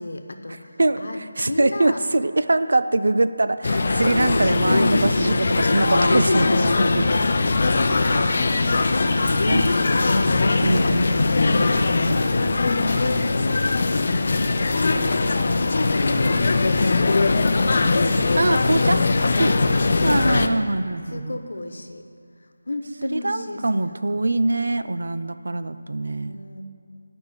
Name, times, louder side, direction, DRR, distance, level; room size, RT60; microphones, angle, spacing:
voice 1, 0.0-1.2 1.5-2.0 7.5-11.4 11.8-12.9 15.6-16.9 19.0-19.7 20.2-20.7 21.1-22.0 22.7-24.3 26.3-26.6, left 2 dB, 70° left, 6 dB, 1.1 m, -34 dB
voice 2, 1.4-7.1 9.5-9.7 10.6-11.1 12.0-12.2 18.4-19.0 19.4-19.6 20.0-21.4 23.1-26.4, right 2 dB, 65° right, 12 dB, 0.5 m, -23 dB
sound 1, 3.6-20.5, left 3 dB, 40° left, 0.5 m, -20 dB
9.7 x 5.4 x 8.2 m, 2.4 s
figure-of-eight pair, 175°, 0 cm